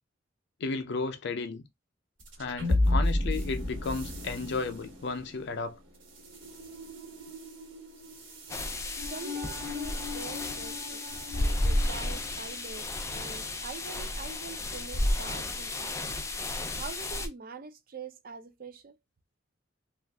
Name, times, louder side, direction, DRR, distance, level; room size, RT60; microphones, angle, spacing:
voice 1, 0.6-1.6 2.4-5.8, left 4 dB, 65° left, 0.6 m, -33 dB
sound 1, 2.2-12.7, left 1 dB, 90° right, 1.5 m, -34 dB
sound 2, 8.5-17.3, left 1 dB, 15° left, 0.4 m, -32 dB
voice 2, 9.0-11.0 11.3-16.0 16.7-19.0, right 5 dB, 50° right, 0.5 m, -44 dB
2.4 x 2.3 x 3.4 m
head